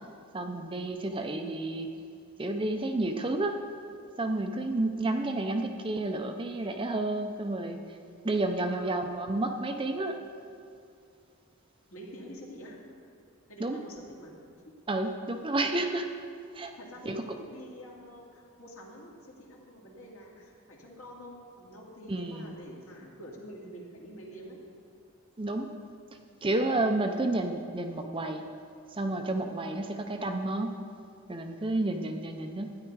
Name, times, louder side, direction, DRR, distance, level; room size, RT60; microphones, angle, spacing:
voice 1, 0.3-1.9 2.4-3.6 4.2-7.8 8.2-10.2 13.6-13.8 14.9-16.1 16.5-16.7 17.1-17.2 22.1-22.5 25.4-25.7 26.4-28.4 28.9-30.8 31.3-32.8, right 2 dB, 25° right, 5 dB, 0.5 m, -30 dB
voice 2, 8.6-9.1 11.9-12.8 13.5-14.3 16.8-24.6 26.3-26.4, equal, 70° left, -3 dB, 2.4 m, -47 dB
12.5 x 9.8 x 4.7 m, 2.4 s
head